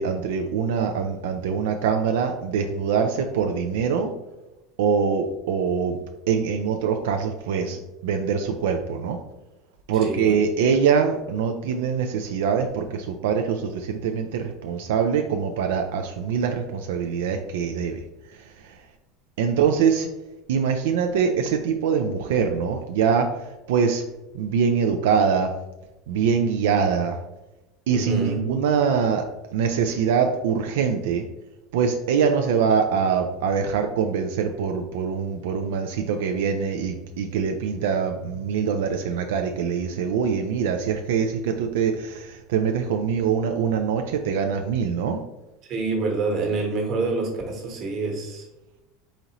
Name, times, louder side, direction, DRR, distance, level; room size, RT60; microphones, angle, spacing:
voice 1, 0.0-4.1 4.8-6.0 6.3-9.2 9.9-18.0 18.3-18.8 19.4-20.1 20.5-24.0 24.3-25.5 26.1-27.2 27.9-29.2 29.5-31.2 31.7-45.2, right 6 dB, 90° right, 5 dB, 0.3 m, -23 dB
voice 2, 10.0-10.4 27.9-28.4 45.6-48.5, right 3 dB, 45° right, 1 dB, 1.2 m, -27 dB
4.1 x 3.8 x 2.9 m, 1.0 s
supercardioid pair, 140°, 0 cm